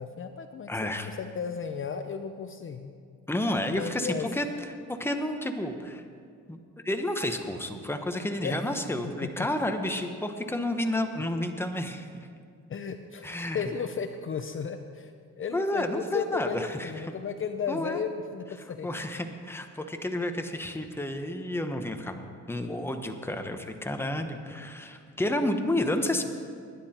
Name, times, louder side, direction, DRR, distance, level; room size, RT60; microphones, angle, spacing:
voice 1, 0.0-2.9 3.7-4.3 8.4-8.7 9.2-9.5 12.7-18.9, left 6 dB, 40° left, 7 dB, 0.7 m, -34 dB
voice 2, 0.7-1.1 3.3-4.4 4.9-6.0 6.5-6.6 6.8-12.1 13.2-13.6 15.5-16.9 17.7-18.0 18.8-26.2, left 1 dB, 10° left, 6 dB, 1.2 m, -30 dB
20.0 x 10.0 x 4.4 m, 2.3 s
cardioid pair, 90°, 30 cm